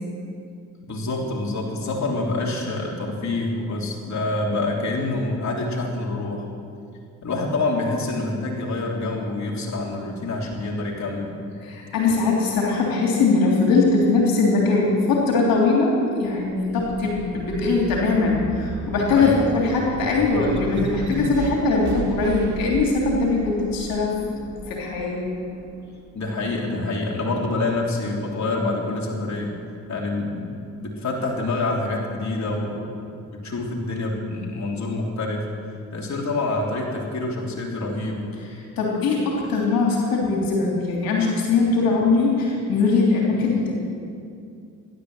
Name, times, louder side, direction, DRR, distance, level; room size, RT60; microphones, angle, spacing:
voice 1, 0.9-6.4 7.2-11.4 19.1-19.5 26.1-29.6 29.9-30.5 30.8-35.5 35.9-38.2, left 2 dB, 50° left, -2 dB, 3.5 m, -26 dB
voice 2, 11.6-25.3 38.8-43.7, left 3 dB, 80° left, -2 dB, 3.4 m, -21 dB
sound 1, 16.2-27.0 27.6-28.7, right 5 dB, 55° right, 2.1 m, -35 dB
15.0 x 11.5 x 8.0 m, 2.4 s
supercardioid pair, 60°, 35 cm